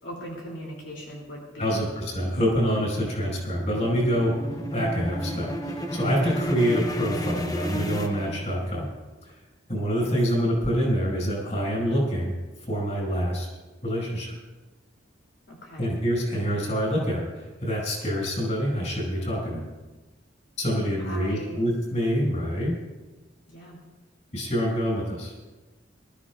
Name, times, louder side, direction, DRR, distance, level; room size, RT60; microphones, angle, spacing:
voice 1, 0.0-2.0 10.0-10.1 15.5-15.9 21.0-21.6 23.5-23.8, equal, 80° left, -3 dB, 2.8 m, -39 dB
voice 2, 1.6-4.3 4.7-8.9 9.2-9.3 9.7-12.3 12.7-13.5 13.8-14.4 15.8-19.6 20.6-22.8 24.3-25.3, equal, 40° left, -2 dB, 5.3 m, -26 dB
sound 1, 2.1-8.9, equal, 20° left, 0.8 m, -33 dB
24.0 x 13.5 x 2.4 m, 1.2 s
head